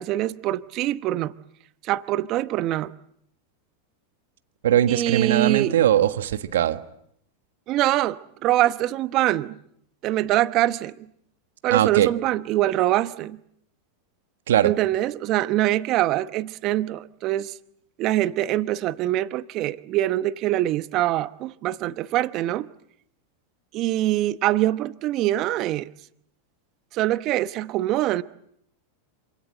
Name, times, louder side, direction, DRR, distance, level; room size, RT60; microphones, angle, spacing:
voice 1, 0.0-1.3 1.8-2.9 4.9-5.7 7.7-9.5 10.0-10.9 11.6-13.4 14.6-17.5 18.0-22.7 23.7-25.9 26.9-28.2, right 14 dB, 45° right, 1.0 m, -24 dB
voice 2, 4.6-6.8 11.7-12.1 14.5-14.7, right 11 dB, 75° right, 1.5 m, -20 dB
27.0 x 25.5 x 7.8 m
hypercardioid pair, 100°, 0 cm